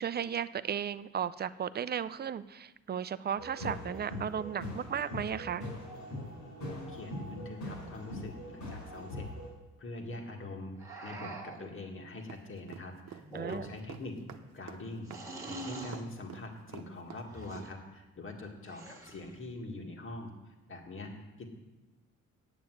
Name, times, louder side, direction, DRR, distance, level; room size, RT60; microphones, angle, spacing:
voice 1, 0.0-5.7 13.3-13.7, right 8 dB, 35° right, 15 dB, 0.5 m, -35 dB
sound 1, 3.4-9.5, left 1 dB, 75° left, 4.7 m, -42 dB
voice 2, 6.6-9.3 9.8-14.1 14.5-21.1 21.4-21.5, left 2 dB, 45° left, 3 dB, 1.9 m, -44 dB
sound 2, 10.8-11.7 13.2-13.9 15.1-16.1 17.3-17.7 18.6-19.4, right 3 dB, 10° right, 1.8 m, -44 dB
sound 3, 12.3-17.7, right 9 dB, 60° right, 1.0 m, -47 dB
9.6 x 7.0 x 7.8 m, 1.1 s
cardioid pair, 90°, 30 cm